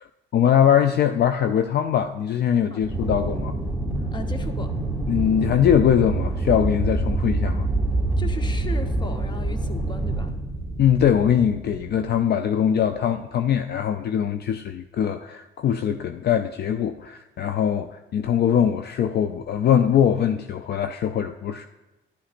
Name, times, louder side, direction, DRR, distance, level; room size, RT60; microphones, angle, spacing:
voice 1, 0.3-3.5 5.1-7.6 10.8-21.7, left 9 dB, 55° left, 8 dB, 0.5 m, -22 dB
Aircraft, 2.8-12.3, right 2 dB, 5° left, 2.7 m, -26 dB
voice 2, 4.1-4.8 8.2-10.3, left 1 dB, 20° left, 6 dB, 1.1 m, -36 dB
11.5 x 11.5 x 2.5 m, 1.0 s
cardioid pair, 90°, 20 cm